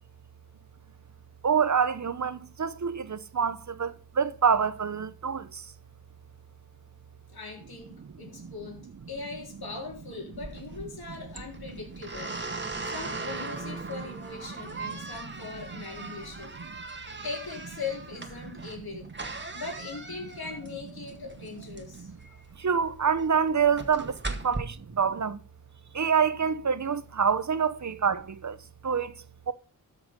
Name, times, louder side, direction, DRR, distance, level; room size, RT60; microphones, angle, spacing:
voice 1, 1.4-5.7 8.2-8.5 11.1-11.2 11.7-11.8 14.7-15.1 15.5-16.2 21.7-22.2 22.6-25.4 25.9-28.6 28.8-29.2 29.5-29.6, right 6 dB, 50° right, 0.9 m, -27 dB
voice 2, 7.3-16.5 17.2-19.1 19.5-22.1 24.6-24.7, left 4 dB, 75° left, 3.9 m, -40 dB
sound 1, 10.3-24.6, right 3 dB, 30° right, 1.8 m, -39 dB
13.0 x 6.0 x 5.4 m
cardioid pair, 60°, 37 cm